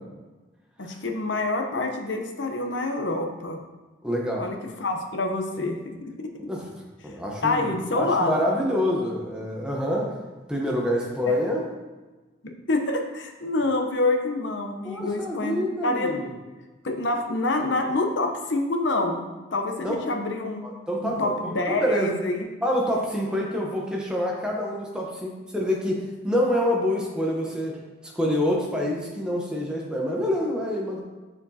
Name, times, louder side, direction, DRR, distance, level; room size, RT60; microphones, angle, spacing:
voice 1, 0.8-3.6 4.4-6.3 7.4-8.5 11.3-11.4 12.4-16.3 16.8-20.6 21.0-22.5, left 2 dB, 65° left, 4 dB, 0.8 m, -27 dB
voice 2, 4.0-4.5 6.4-6.6 7.0-10.1 10.5-11.6 14.8-16.3 19.8-19.9 20.6-22.1 22.6-27.8 28.0-31.0, left 1 dB, 5° right, -2 dB, 0.9 m, -26 dB
7.0 x 7.0 x 2.8 m, 1.2 s
head